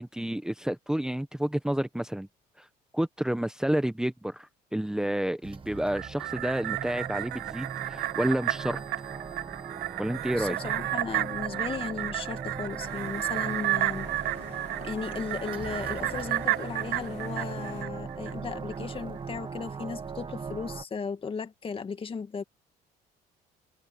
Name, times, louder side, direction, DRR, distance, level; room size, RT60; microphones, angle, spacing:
voice 1, 0.0-2.3 2.6-2.7 2.9-8.8 10.0-10.6, right 1 dB, 5° right, 1.1 m, -30 dB
sound 1, 5.4-20.8, right 5 dB, 30° right, 2.0 m, -39 dB
sound 2, 5.8-18.3 18.7-18.8, right 17 dB, 80° right, 0.6 m, -32 dB
voice 2, 10.3-14.1 14.8-22.4, left 5 dB, 30° left, 1.9 m, -36 dB
sound 3, 12.8-17.9, left 14 dB, 80° left, 3.4 m, -48 dB
cardioid pair, 110°, 17 cm